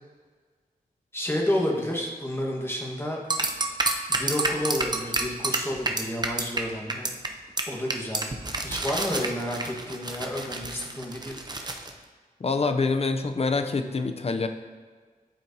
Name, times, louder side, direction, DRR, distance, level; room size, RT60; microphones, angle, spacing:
voice 1, 1.1-3.2 4.1-7.1 7.7-8.2 8.6-11.4, left 1 dB, 15° left, -1 dB, 1.4 m, -30 dB
sound 1, 3.3-6.6 6.9-7.3 7.6-7.7 7.9-11.9, right 2 dB, 30° right, 0.7 m, -28 dB
voice 2, 12.4-14.5, left 4 dB, 45° left, 8 dB, 0.6 m, -26 dB
12.0 x 4.4 x 2.8 m, 1.6 s
wide cardioid pair, 85°, 15 cm